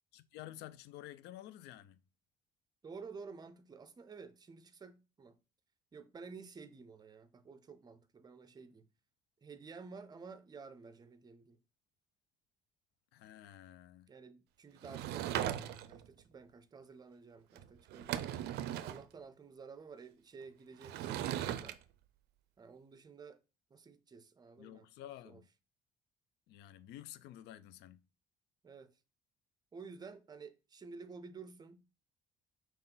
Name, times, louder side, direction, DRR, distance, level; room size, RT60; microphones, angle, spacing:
voice 1, 0.1-2.0 13.1-14.1 24.6-25.5 26.5-28.0, left 13 dB, 80° left, 0.4 m, -51 dB
voice 2, 2.8-5.4 5.9-8.9 9.4-11.6 14.1-18.3 18.8-21.8 22.6-23.4 23.7-24.9 25.2-25.4 28.6-28.9 29.7-31.9, right 5 dB, 25° right, 0.5 m, -52 dB
Sliding door / Wood, 14.8-16.1 17.6-17.7 17.9-19.0 20.8-21.7, right 11 dB, 75° right, 0.4 m, -38 dB
5.5 x 2.4 x 3.8 m
cardioid pair, 110°, 17 cm